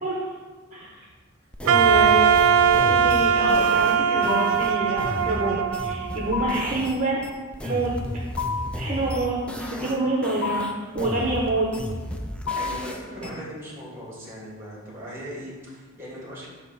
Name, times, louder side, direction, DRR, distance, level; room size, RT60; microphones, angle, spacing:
voice 1, 0.7-1.0 1.6-7.2 7.6-7.9 8.7-11.7 13.2-13.4, right 2 dB, 35° right, -4 dB, 0.9 m, -27 dB
sound 1, 1.5-7.0 7.2-10.0 10.2-13.3, equal, 5° left, 0.4 m, -34 dB
Wind instrument woodwind instrument, 1.7-6.7, right 7 dB, 75° right, 0.3 m, -20 dB
sound 2, 4.3-4.8 6.3-6.8 8.4-8.8 10.4-10.9 12.5-12.9, left 5 dB, 70° left, 0.4 m, -29 dB
voice 2, 12.4-16.5, equal, 10° right, -4 dB, 1.9 m, -38 dB
8.0 x 2.9 x 5.6 m, 1.4 s
head